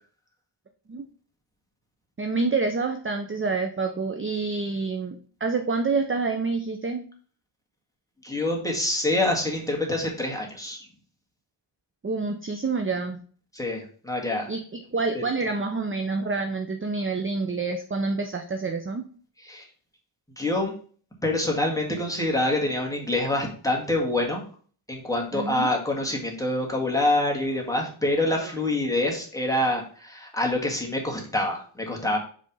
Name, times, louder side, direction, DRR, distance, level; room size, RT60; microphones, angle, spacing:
voice 1, 2.2-7.0 12.0-13.2 14.5-19.0 25.3-25.7 28.4-28.5, right 4 dB, 25° right, 5 dB, 0.6 m, -27 dB
voice 2, 8.2-10.8 13.5-14.5 19.4-19.6 20.4-20.7 21.2-24.4 24.9-32.2, left 1 dB, 5° left, -1 dB, 1.7 m, -26 dB
5.3 x 3.4 x 5.3 m, 0.44 s
wide cardioid pair, 100°, 50 cm